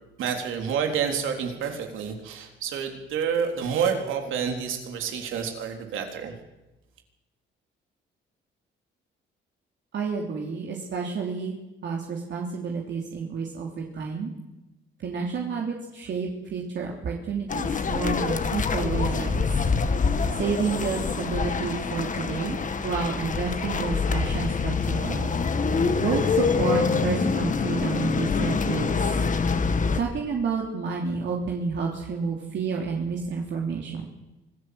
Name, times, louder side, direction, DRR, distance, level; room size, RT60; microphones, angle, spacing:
voice 1, 0.2-6.3, right 7 dB, 85° right, 4 dB, 3.8 m, -28 dB
voice 2, 9.9-14.3 15.0-19.5 20.3-22.6 22.8-25.3 26.0-29.1 29.9-34.1, right 5 dB, 65° right, 0 dB, 3.1 m, -30 dB
sound 1, 17.5-30.0, left 5 dB, 40° left, 1.8 m, -25 dB
25.0 x 14.5 x 7.9 m, 1.0 s
cardioid pair, 90°, 20 cm